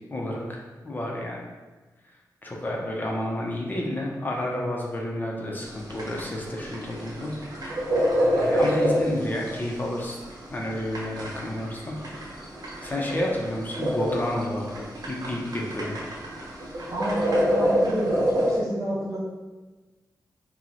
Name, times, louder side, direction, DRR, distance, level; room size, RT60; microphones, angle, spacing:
voice 1, 0.1-1.4 2.4-7.3 8.4-10.2 10.5-12.0 12.8-16.0, left 1 dB, 25° left, -2 dB, 0.5 m, -30 dB
sound 1, 5.7-18.6, equal, 65° right, 0.7 m, -27 dB
voice 2, 16.9-19.2, equal, 45° right, -8 dB, 1.0 m, -30 dB
2.9 x 2.0 x 3.7 m, 1.2 s
wide cardioid pair, 115°, 7 cm